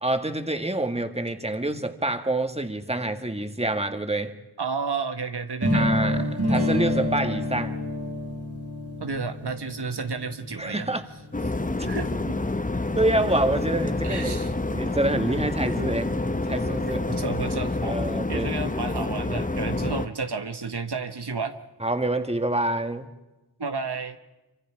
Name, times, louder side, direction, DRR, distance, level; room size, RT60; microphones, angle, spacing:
voice 1, 0.0-4.3 5.7-7.8 10.6-11.0 13.0-14.4 14.7-16.1 16.4-17.1 17.8-18.5 21.8-23.1, right 1 dB, 15° right, 7 dB, 1.9 m, -26 dB
voice 2, 4.6-5.9 9.0-10.9 11.8-12.4 14.0-14.5 15.6-15.7 17.1-18.0 18.3-21.6 23.6-24.2, right 4 dB, 80° right, 7 dB, 1.3 m, -31 dB
sound 1, 5.6-11.5, left 1 dB, 35° right, 3.2 m, -28 dB
sound 2, 11.3-20.1, left 2 dB, 20° left, 0.9 m, -28 dB
26.5 x 25.0 x 4.9 m, 1.0 s
wide cardioid pair, 45°, 39 cm